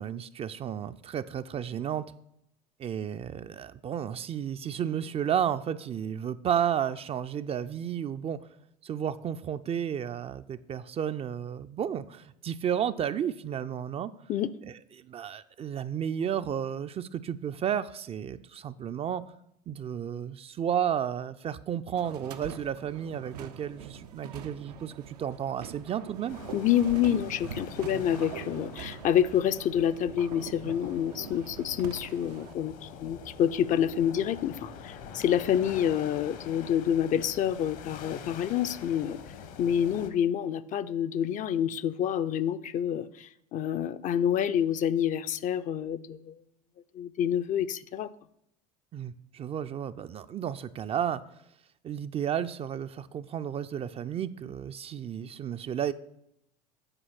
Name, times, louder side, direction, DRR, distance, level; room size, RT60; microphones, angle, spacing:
voice 1, 0.0-2.1 2.8-8.4 8.8-14.1 14.7-19.2 19.7-26.4 27.9-28.3 48.9-51.3 51.8-55.9, right 9 dB, 30° right, 11 dB, 0.4 m, -32 dB
sound 1, 21.9-32.5, right 8 dB, 80° right, 0.6 m, -44 dB
sound 2, 26.3-40.1, left 6 dB, 65° left, 1.1 m, -45 dB
voice 2, 26.5-39.2 39.6-46.4 46.9-48.1, left 9 dB, 40° left, 13 dB, 0.4 m, -28 dB
8.9 x 4.5 x 5.9 m, 0.79 s
hypercardioid pair, 75°, 20 cm